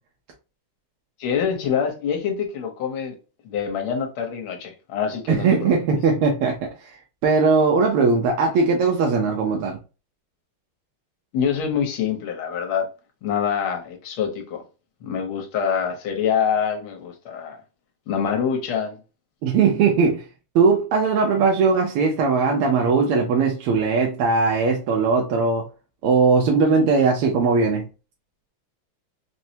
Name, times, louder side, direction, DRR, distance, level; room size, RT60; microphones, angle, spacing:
voice 1, 1.2-3.1 3.4-5.7 11.3-12.9 13.2-14.6 15.0-17.6 18.1-19.0, left 7 dB, 75° left, 1.7 m, -25 dB
voice 2, 5.3-7.0 7.2-9.8 19.4-20.2 20.5-25.6 26.0-27.9, right 4 dB, 85° right, 1.6 m, -19 dB
4.3 x 2.0 x 2.7 m
omnidirectional pair, 2.4 m